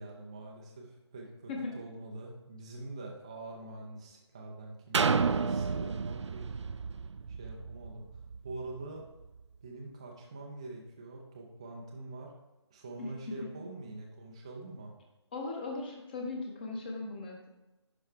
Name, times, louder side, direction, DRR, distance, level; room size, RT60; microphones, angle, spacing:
voice 1, 0.0-6.5 7.3-8.1 8.4-9.0 9.6-12.3 12.7-14.9, right 2 dB, 10° right, -1 dB, 0.4 m, -45 dB
sound 1, 4.9-8.7 9.2-9.3, right 5 dB, 80° right, 0.4 m, -31 dB
voice 2, 13.0-13.5 15.3-17.5, left 3 dB, 20° left, 1 dB, 0.7 m, -38 dB
10.5 x 4.5 x 3.3 m, 1.0 s
figure-of-eight pair, 160°, 15 cm